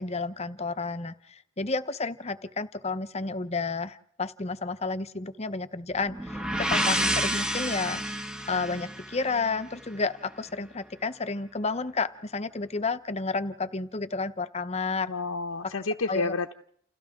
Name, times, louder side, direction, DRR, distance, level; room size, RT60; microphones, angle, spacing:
voice 1, 0.0-8.2 8.5-15.1 16.1-16.3, left 4 dB, 30° left, 12 dB, 0.9 m, -31 dB
sound 1, 6.0-9.8, equal, 5° right, 1.5 m, -30 dB
voice 2, 15.1-16.5, left 3 dB, 85° left, 5 dB, 0.9 m, -30 dB
29.5 x 29.0 x 3.7 m, 0.68 s
head